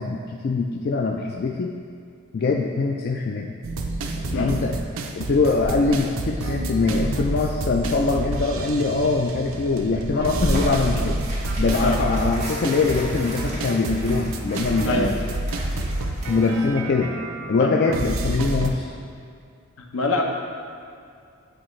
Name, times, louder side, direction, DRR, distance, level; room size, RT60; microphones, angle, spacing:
voice 1, 0.0-1.7 2.3-3.5 4.2-4.8 5.2-11.2 11.6-15.1 16.3-17.1 17.5-18.9, left 3 dB, 45° left, 0 dB, 0.3 m, -23 dB
sound 1, 3.6-18.7, right 2 dB, 70° right, 0.5 m, -29 dB
sound 2, 3.9-11.9, equal, 10° right, 1.0 m, -35 dB
Tearing, 10.5-16.7, right 1 dB, 30° right, 1.2 m, -36 dB
voice 2, 19.8-20.2, left 2 dB, 70° left, 1 dB, 0.7 m, -25 dB
8.8 x 4.4 x 3.1 m, 2.4 s
head